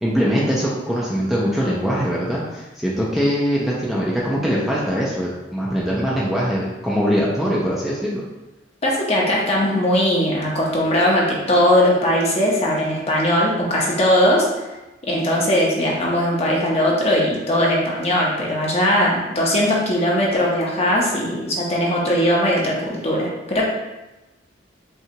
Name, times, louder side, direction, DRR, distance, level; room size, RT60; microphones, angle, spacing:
voice 1, 0.0-8.2, equal, ahead, -6 dB, 0.5 m, -22 dB
voice 2, 8.8-14.5 15.1-23.6, equal, 35° left, -3 dB, 0.8 m, -19 dB
5.5 x 2.3 x 2.9 m, 1.0 s
head